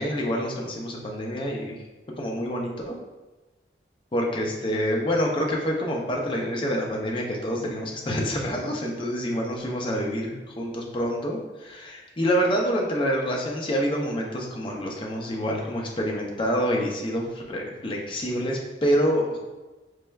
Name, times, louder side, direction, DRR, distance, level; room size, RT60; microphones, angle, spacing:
voice 1, 0.0-1.8 2.2-3.0 4.1-19.4, equal, 30° left, -1 dB, 0.4 m, -27 dB
4.2 x 3.2 x 2.2 m, 1.2 s
head